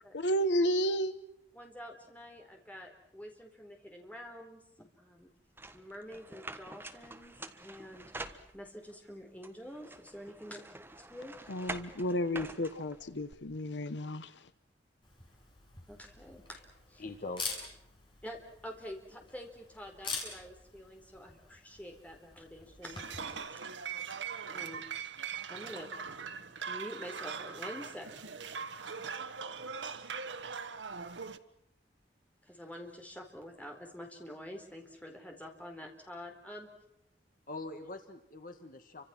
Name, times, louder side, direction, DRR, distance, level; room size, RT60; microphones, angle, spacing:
voice 1, 0.1-1.1 11.5-14.4, equal, 80° left, 12 dB, 1.0 m, -32 dB
voice 2, 1.5-5.3 5.7-7.3 7.6-10.6 11.0-11.4 15.9-16.6 16.9-17.0 18.2-23.6 24.5-24.8 25.5-25.9 26.7-28.1 32.4-36.7, equal, 10° left, 2 dB, 4.1 m, -47 dB
sound 1, 5.6-8.9 9.4-13.3, right 2 dB, 10° right, 1.4 m, -46 dB
Camera, 15.0-23.3, left 4 dB, 30° left, 6.8 m, -45 dB
voice 3, 17.0-17.7 37.5-39.1, left 2 dB, 50° left, 7 dB, 1.6 m, -43 dB
sound 2, 22.8-31.4, right 6 dB, 85° right, 1.3 m, -41 dB
29.5 x 25.5 x 6.1 m, 0.75 s
head